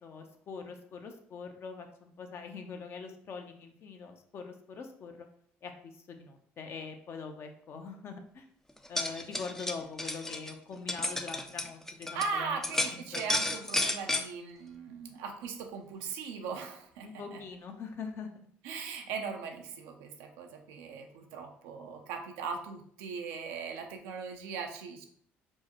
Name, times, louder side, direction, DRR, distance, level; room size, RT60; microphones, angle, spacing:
voice 1, 0.0-5.3 5.6-8.5 8.9-13.2 17.0-18.3, left 5 dB, 50° left, 4 dB, 0.6 m, -43 dB
sound 1, 8.8-12.3 12.6-14.3, left 1 dB, 10° left, 0.4 m, -32 dB
voice 2, 12.1-17.4 18.6-25.0, right 5 dB, 85° right, 3 dB, 0.5 m, -39 dB
4.5 x 2.1 x 2.9 m, 0.62 s
supercardioid pair, 70°, 5 cm